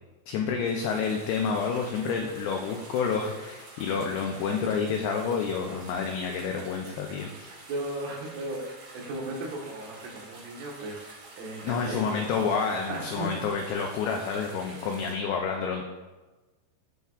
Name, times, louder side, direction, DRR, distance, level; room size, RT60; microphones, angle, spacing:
voice 1, 0.3-7.5 11.6-15.9, left 5 dB, 90° left, 2 dB, 2.3 m, -29 dB
sound 1, 0.6-15.1, right 2 dB, 65° right, 1.7 m, -48 dB
voice 2, 7.7-11.0 11.4-13.3, right 1 dB, 90° right, -3 dB, 4.0 m, -36 dB
13.5 x 4.6 x 2.4 m, 1.2 s
omnidirectional pair, 5.4 m